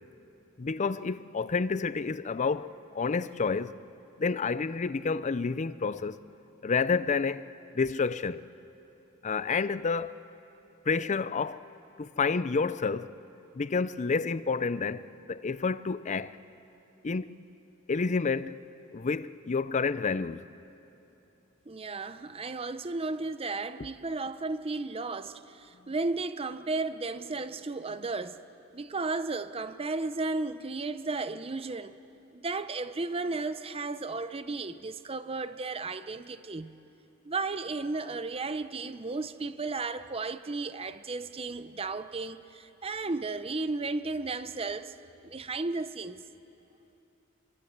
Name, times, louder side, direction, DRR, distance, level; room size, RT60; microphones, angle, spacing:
voice 1, 0.6-3.8 4.2-6.2 6.6-8.4 9.2-10.2 10.9-11.7 12.0-13.1 13.5-15.0 15.3-16.3 17.0-17.4 17.9-18.6 18.9-20.5, left 4 dB, 35° left, 0.5 m, -29 dB
voice 2, 21.7-28.4 28.7-32.0 32.3-36.8 37.2-45.0 45.2-46.2, right 3 dB, 30° right, 0.7 m, -34 dB
25.5 x 24.0 x 8.0 m
head